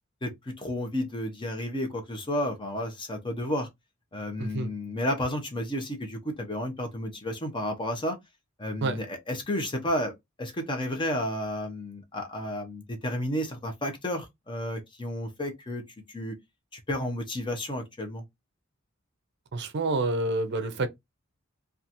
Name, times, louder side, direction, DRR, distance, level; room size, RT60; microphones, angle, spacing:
voice 1, 0.2-3.7 4.1-8.2 8.6-16.4 16.7-18.2, left 1 dB, 25° left, 0.6 m, -32 dB
voice 2, 19.5-20.9, right 2 dB, 55° right, 0.5 m, -28 dB
2.8 x 2.3 x 2.5 m
head